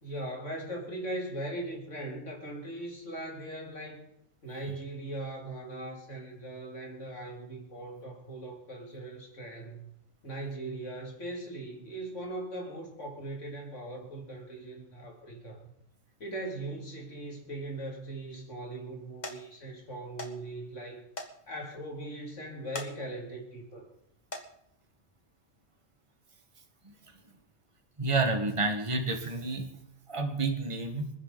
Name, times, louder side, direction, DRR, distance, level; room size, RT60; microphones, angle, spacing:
voice 1, 0.0-4.0 4.4-9.9 10.2-15.7 16.2-21.1 21.5-23.9, right 1 dB, 70° left, 0 dB, 3.4 m, -40 dB
sound 1, 17.8-18.2 18.7-18.9 19.2-19.4 20.2-20.3 20.6-20.7 21.1-21.3 21.7-21.8 22.6-22.9 23.4-23.7 24.2-24.5 25.4-25.6 26.1-26.2, left 2 dB, 35° left, 2.2 m, -40 dB
voice 2, 26.8-27.2 28.0-29.7 30.1-31.1, right 3 dB, 25° right, 4 dB, 1.9 m, -30 dB
27.5 x 10.0 x 4.2 m, 0.74 s
omnidirectional pair, 1.3 m